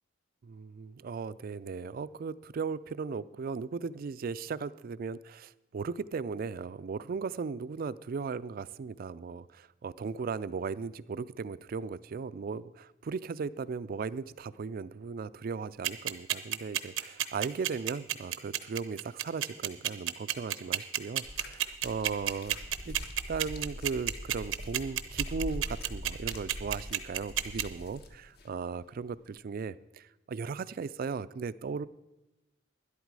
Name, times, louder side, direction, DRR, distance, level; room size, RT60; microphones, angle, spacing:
voice 1, 0.4-22.6 22.9-23.0 23.3-31.9, right 5 dB, 50° right, 17 dB, 0.3 m, -37 dB
sound 1, 15.8-27.6, right 12 dB, 85° right, 0.7 m, -29 dB
sound 2, 21.2-28.5 29.3-29.4, left 1 dB, 55° left, 1.2 m, -43 dB
12.0 x 11.0 x 4.7 m, 0.99 s
head